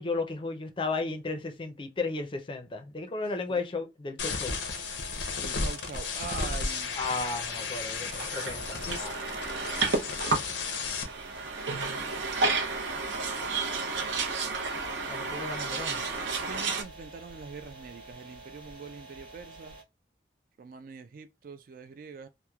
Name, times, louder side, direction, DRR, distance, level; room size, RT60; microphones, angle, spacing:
voice 1, 0.0-4.6 7.0-9.5 15.1-16.0, left 3 dB, 30° left, 0.5 m, -34 dB
sound 1, 4.2-11.0, left 4 dB, 80° left, 0.6 m, -34 dB
sound 2, 4.5-19.8, right 2 dB, 30° right, 0.7 m, -48 dB
voice 2, 5.4-7.0 11.0-11.5 16.4-19.8 20.6-22.3, right 5 dB, 50° right, 0.3 m, -43 dB
sound 3, 8.1-16.8, right 4 dB, 85° right, 0.7 m, -31 dB
2.9 x 2.1 x 2.2 m
head